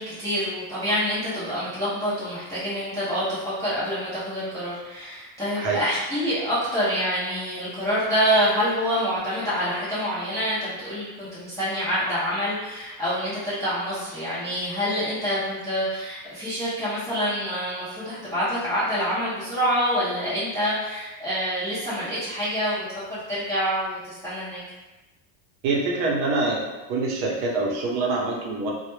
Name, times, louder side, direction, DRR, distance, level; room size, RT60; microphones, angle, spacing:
voice 1, 0.0-24.6, equal, 5° left, -15 dB, 0.4 m, -26 dB
voice 2, 25.6-26.6 26.9-28.7, right 3 dB, 65° right, -2 dB, 0.7 m, -25 dB
2.1 x 2.1 x 3.0 m, 1.1 s
cardioid pair, 170°, 45 cm